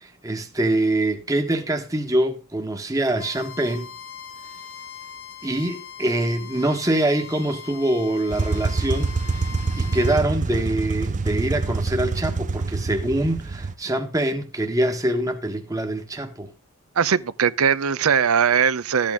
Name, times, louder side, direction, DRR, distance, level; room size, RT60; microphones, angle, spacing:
voice 1, 0.0-3.9 5.4-9.4 9.7-16.5, right 1 dB, 15° right, 1.2 m, -24 dB
Bowed string instrument, 3.2-10.2, left 7 dB, 70° left, 1.4 m, -41 dB
chitty bang sound - start & tickling, 8.3-13.7, right 3 dB, 35° right, 0.6 m, -26 dB
voice 2, 17.0-19.1, right 7 dB, 85° right, 0.6 m, -20 dB
13.0 x 8.6 x 3.6 m
head